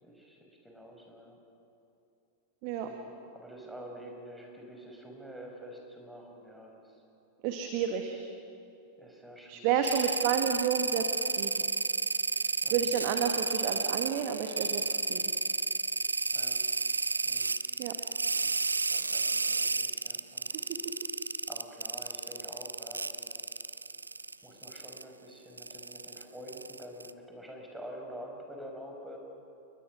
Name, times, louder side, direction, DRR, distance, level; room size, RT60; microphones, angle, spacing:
voice 1, 0.0-1.4 2.8-7.0 9.0-10.5 12.6-12.9 16.3-16.6 17.2-17.5 18.4-20.5 21.5-23.5 24.4-29.2, equal, 5° right, 1 dB, 5.4 m, -48 dB
voice 2, 7.4-8.2 9.5-11.5 12.7-15.3 17.8-17.9, right 8 dB, 45° right, 5 dB, 1.7 m, -31 dB
sound 1, 9.8-24.3 24.6-25.0 25.6-27.1, right 3 dB, 80° right, 0.5 m, -31 dB
30.0 x 21.0 x 6.3 m, 2.8 s
figure-of-eight pair, 90°, 0 cm